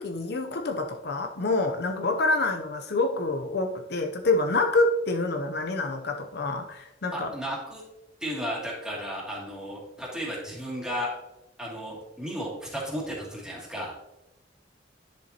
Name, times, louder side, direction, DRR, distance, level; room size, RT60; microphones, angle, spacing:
voice 1, 0.0-7.3, left 2 dB, 55° left, 4 dB, 0.6 m, -27 dB
voice 2, 7.1-7.8 8.2-11.1 11.6-13.9, equal, 5° right, -4 dB, 2.4 m, -34 dB
10.5 x 7.0 x 2.9 m, 0.92 s
head